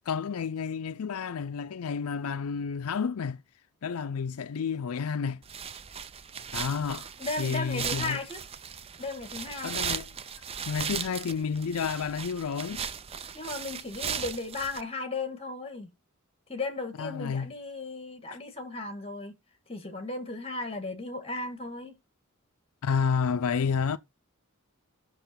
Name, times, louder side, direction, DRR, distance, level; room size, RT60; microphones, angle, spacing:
voice 1, 0.1-3.4 3.8-5.4 6.5-7.1 7.4-8.2 9.6-10.1 10.7-12.8 17.0-17.5 22.8-24.0, left 6 dB, 75° left, 0.5 m, -30 dB
sound 1, 5.4-14.8, right 7 dB, 25° right, 0.5 m, -37 dB
voice 2, 7.2-8.4 9.0-9.8 13.3-15.9 16.5-19.3 19.7-22.0, left 3 dB, 25° left, 1.7 m, -35 dB
6.7 x 6.1 x 5.7 m
head